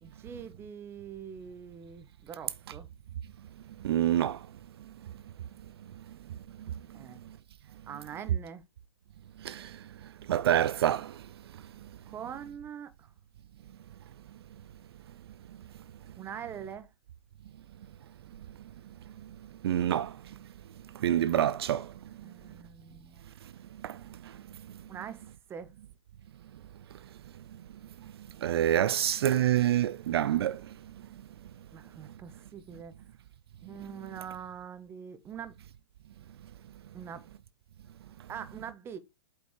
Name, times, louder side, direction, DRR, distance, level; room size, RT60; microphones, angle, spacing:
voice 1, 0.0-2.9 6.9-7.2 7.9-8.6 12.1-13.1 16.2-16.9 22.2-23.2 24.9-25.2 25.5-25.7 31.7-33.0 33.6-35.6 36.9-37.3 38.3-39.0, right 8 dB, 15° right, 0.9 m, -43 dB
voice 2, 3.8-4.4 9.4-9.7 10.3-11.1 19.6-20.1 21.0-21.9 23.8-24.0 28.4-30.6, right 11 dB, 65° right, 0.4 m, -26 dB
8.2 x 5.1 x 3.2 m
hypercardioid pair, 145°, 15 cm